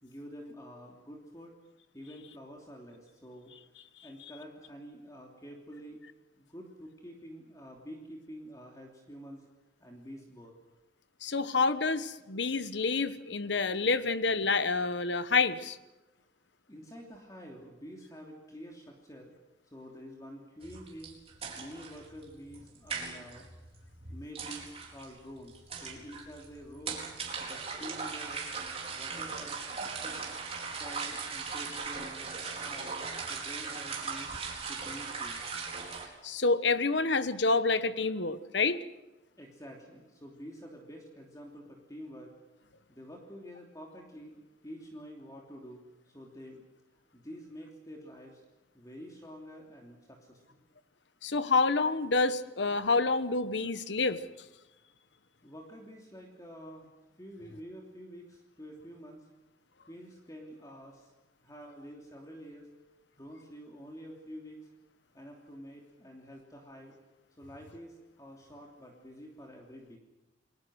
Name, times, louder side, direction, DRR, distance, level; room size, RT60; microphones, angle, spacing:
voice 1, 0.0-1.5 1.9-3.5 4.0-6.0 6.4-9.4 9.8-10.5 16.7-19.3 19.7-21.2 21.5-23.5 24.1-27.0 27.4-28.6 28.9-30.3 30.8-33.0 33.2-34.4 34.7-35.5 39.4-42.3 42.9-46.6 47.1-48.4 48.7-50.6 55.4-56.9 57.2-59.3 59.9-61.1 61.4-62.7 63.1-64.7 65.1-66.9 67.4-70.0, equal, 20° left, 0 dB, 3.0 m, -48 dB
voice 2, 11.2-15.8 36.2-38.8 51.2-54.2, left 3 dB, 65° left, 13 dB, 1.1 m, -28 dB
sound 1, 20.6-36.1, right 5 dB, 35° right, 4.5 m, -39 dB
30.0 x 21.5 x 6.4 m, 1.0 s
head